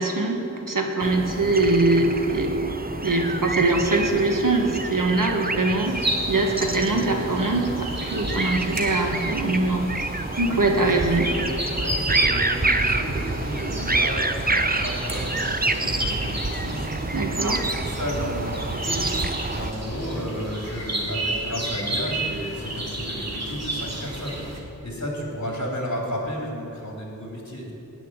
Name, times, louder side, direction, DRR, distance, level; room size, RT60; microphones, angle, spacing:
voice 1, 0.0-2.6 3.0-6.0 6.3-9.9 10.4-11.3 17.1-17.7, right 2 dB, 70° right, 2 dB, 1.7 m, -22 dB
sound 1, 1.0-19.7, right 2 dB, 25° right, 0.8 m, -28 dB
sound 2, 5.8-24.6, right 1 dB, 50° right, 2.2 m, -32 dB
voice 2, 10.7-16.9 17.5-19.1 19.5-24.4 24.8-27.7, equal, 55° left, -3 dB, 4.0 m, -32 dB
17.0 x 6.0 x 9.8 m, 2.8 s
wide cardioid pair, 50°, 34 cm